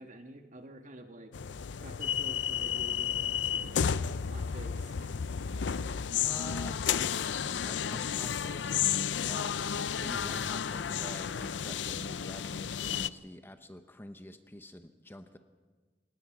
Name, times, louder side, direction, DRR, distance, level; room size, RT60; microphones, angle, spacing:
voice 1, 0.0-1.3 1.8-3.9 4.3-5.1 5.5-5.6, right 1 dB, 45° right, 5 dB, 1.7 m, -48 dB
sound 1, 1.3-13.1, left 8 dB, 80° left, 0.5 m, -32 dB
voice 2, 6.2-6.9 7.4-9.7 10.0-15.4, left 1 dB, 10° left, 8 dB, 0.9 m, -47 dB
24.0 x 19.5 x 6.0 m, 1.4 s
head